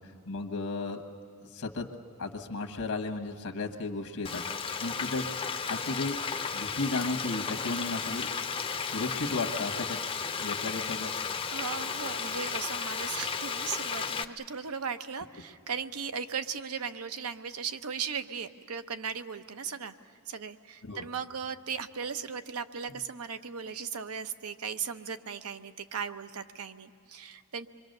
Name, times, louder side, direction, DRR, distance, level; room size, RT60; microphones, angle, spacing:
voice 1, 0.3-1.0 1.5-1.9 2.2-4.4 4.8-5.2 5.7-6.2 6.5-8.3 8.8-10.0 10.4-11.1 20.8-21.1, left 3 dB, 75° left, 5 dB, 1.3 m, -34 dB
Frying (food), 4.2-14.2, left 5 dB, 25° left, 0.6 m, -34 dB
voice 2, 11.5-19.9 20.3-27.7, right 6 dB, 75° right, 10 dB, 0.8 m, -37 dB
26.5 x 23.0 x 6.7 m, 2.4 s
head